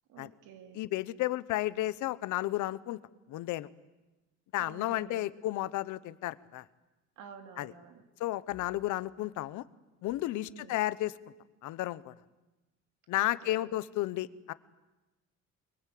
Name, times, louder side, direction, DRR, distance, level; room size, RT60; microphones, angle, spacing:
voice 1, 0.1-0.8 4.6-5.2 7.2-8.0 10.3-10.8 13.1-13.7, right 7 dB, 85° right, 5 dB, 3.2 m, -51 dB
voice 2, 0.7-3.0 3.3-3.7 4.5-6.6 7.6-7.7 8.2-9.6 10.0-11.1 11.6-12.1 13.1-14.5, left 16 dB, 80° left, 16 dB, 1.0 m, -33 dB
24.0 x 23.0 x 8.6 m, 1.1 s
cardioid pair, 155°, 30 cm